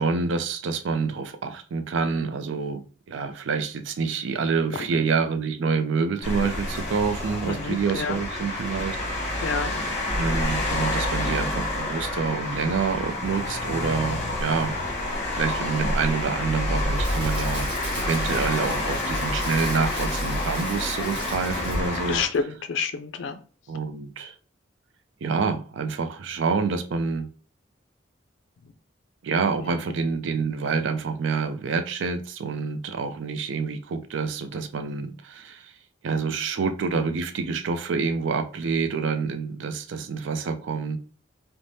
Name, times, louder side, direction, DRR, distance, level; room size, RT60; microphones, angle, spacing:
voice 1, 0.0-9.0 9.3-9.8 10.1-14.8 15.3-17.7 18.0-22.2 23.7-24.3 25.2-27.3 29.2-35.7 36.0-41.0, right 5 dB, 75° right, 0.4 m, -27 dB
sound 1, 6.2-22.2, left 1 dB, 35° left, 0.9 m, -28 dB
voice 2, 7.5-8.2 9.4-9.7 21.6-21.7 22.1-23.4, left 5 dB, 75° left, 0.4 m, -28 dB
Crackle, 16.6-22.1 22.3-22.5, equal, 25° right, 1.2 m, -37 dB
3.3 x 2.1 x 2.6 m
head